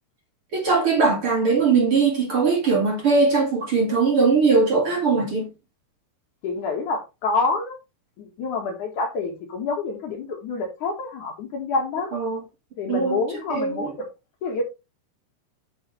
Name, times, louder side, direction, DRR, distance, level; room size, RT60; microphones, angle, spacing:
voice 1, 0.5-5.5 12.1-12.4 12.9-13.2 13.5-13.9, right 4 dB, 40° right, 2.6 m, -20 dB
voice 2, 6.4-7.8 8.2-12.1 12.8-14.1 14.4-14.6, left 3 dB, 60° left, 2.8 m, -27 dB
8.9 x 7.1 x 3.3 m
omnidirectional pair, 4.5 m